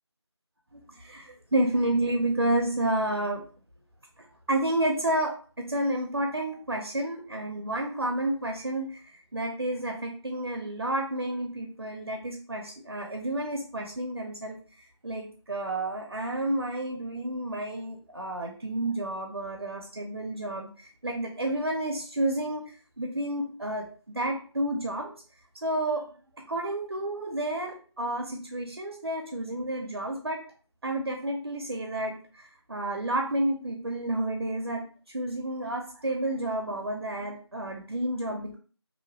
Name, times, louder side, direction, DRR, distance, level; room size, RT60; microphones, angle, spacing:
voice 1, 1.0-3.4 4.5-5.3 5.6-8.9 9.3-14.6 15.0-22.6 23.0-25.1 25.6-26.0 26.5-30.4 30.8-34.9 35.1-38.6, right 1 dB, 55° right, 2 dB, 0.5 m, -30 dB
2.5 x 2.0 x 2.8 m, 0.41 s
figure-of-eight pair, 175°, 15 cm